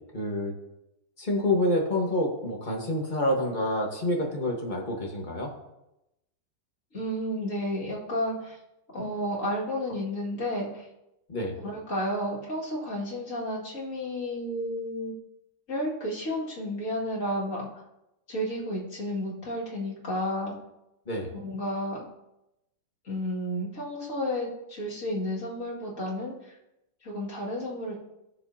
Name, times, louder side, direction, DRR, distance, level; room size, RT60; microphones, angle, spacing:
voice 1, 0.1-0.5 1.2-5.5 11.3-11.5 21.1-21.3, left 1 dB, 30° left, 0 dB, 1.4 m, -27 dB
voice 2, 6.9-8.6 8.9-10.9 11.6-15.1 15.7-17.7 18.3-20.5 21.3-22.1 23.0-26.3 27.0-27.9, equal, 45° left, -5 dB, 2.5 m, -32 dB
15.5 x 6.6 x 2.8 m, 0.90 s
omnidirectional pair, 1.9 m